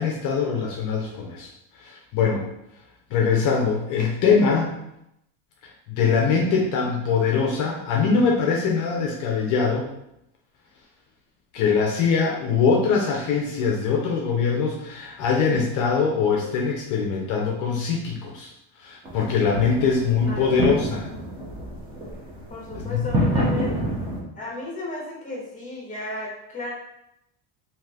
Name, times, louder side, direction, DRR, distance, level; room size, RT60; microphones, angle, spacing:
voice 1, 0.0-1.5 1.8-2.5 3.1-4.7 5.6-9.9 11.5-18.5 18.8-21.1 22.7-23.1, left 5 dB, 45° left, -1 dB, 0.5 m, -22 dB
sound 1, 19.0-24.2, equal, 15° right, 0.3 m, -28 dB
voice 2, 20.2-20.7 22.5-23.9 24.3-26.7, left 2 dB, 15° left, -2 dB, 0.9 m, -34 dB
2.6 x 2.4 x 3.3 m, 0.82 s
supercardioid pair, 135°, 44 cm